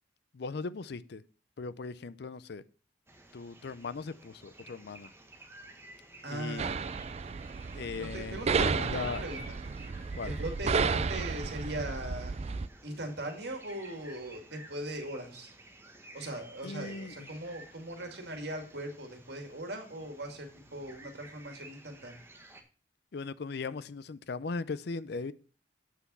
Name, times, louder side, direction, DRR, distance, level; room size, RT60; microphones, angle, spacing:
voice 1, 0.3-1.2 1.6-2.6 3.3-5.1 6.3-6.6 7.7-9.5 10.2-10.3 16.2-16.3 16.6-17.3 23.1-25.3, left 4 dB, 60° left, 0.5 m, -38 dB
sound 1, 3.1-22.6, right 1 dB, 15° right, 1.4 m, -53 dB
voice 2, 6.2-6.8 8.0-9.4 10.2-12.4 12.8-15.5 16.1-22.2, right 1 dB, 60° right, 2.3 m, -40 dB
sound 2, 6.6-12.7, right 5 dB, 35° right, 0.4 m, -32 dB
8.5 x 5.9 x 5.5 m
head